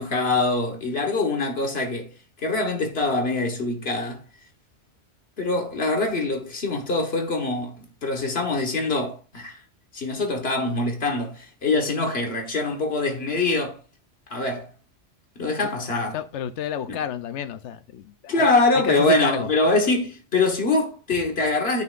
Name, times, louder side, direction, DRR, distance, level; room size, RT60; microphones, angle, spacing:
voice 1, 0.0-2.1 2.4-4.2 5.4-9.6 9.9-13.8 14.3-14.7 15.4-16.2 16.9-17.0 18.3-21.8, left 2 dB, 55° left, 1.7 m, -24 dB
voice 2, 16.1-18.5 18.8-19.5, left 8 dB, 70° left, 0.9 m, -30 dB
9.3 x 5.7 x 2.5 m
omnidirectional pair, 1.3 m